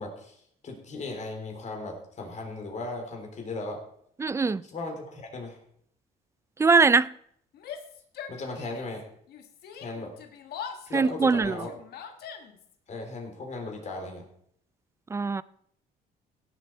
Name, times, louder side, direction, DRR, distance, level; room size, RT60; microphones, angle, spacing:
voice 1, 0.0-3.8 4.6-5.6 8.3-9.0 9.7-10.1 10.9-11.7 12.9-14.2, left 2 dB, 45° left, 3.6 m, -37 dB
voice 2, 4.2-4.6 6.6-7.1 10.9-11.6 15.1-15.4, right 4 dB, 15° right, 0.3 m, -21 dB
Yell, 7.5-9.0 9.3-12.7, left 7 dB, 70° left, 1.4 m, -42 dB
16.5 x 7.5 x 4.6 m
cardioid pair, 110°, 17 cm